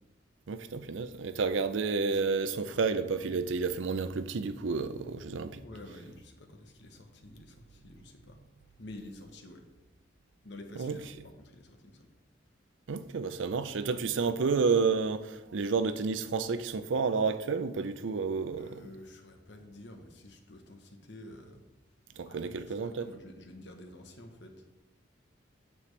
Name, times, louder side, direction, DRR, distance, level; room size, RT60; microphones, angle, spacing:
voice 1, 0.5-5.6 10.8-11.0 12.9-18.8 22.2-23.1, right 4 dB, 75° right, 0.5 m, -30 dB
voice 2, 5.6-8.4 8.8-9.7 10.4-12.1 18.6-21.6 22.2-24.6, left 1 dB, 60° left, 1.0 m, -49 dB
8.5 x 6.8 x 3.2 m
head